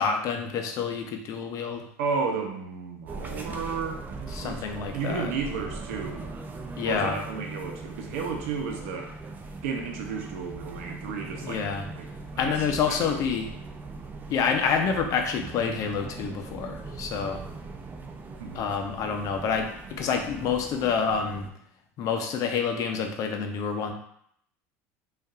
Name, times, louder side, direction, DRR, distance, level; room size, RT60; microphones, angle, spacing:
voice 1, 0.0-1.8 4.3-5.3 6.8-7.2 11.4-11.9 12.4-13.5 14.3-17.4 18.5-21.5 22.0-23.9, left 6 dB, 50° left, 5 dB, 0.6 m, -28 dB
voice 2, 2.0-6.3 6.8-9.1 9.6-11.7 11.9-12.1 12.3-13.2 18.4-18.6, right 5 dB, 80° right, 2 dB, 0.8 m, -33 dB
sound 1, 3.1-21.5, right 3 dB, 25° right, 0.6 m, -40 dB
5.2 x 2.6 x 2.5 m, 0.68 s
supercardioid pair, 100°, 7 cm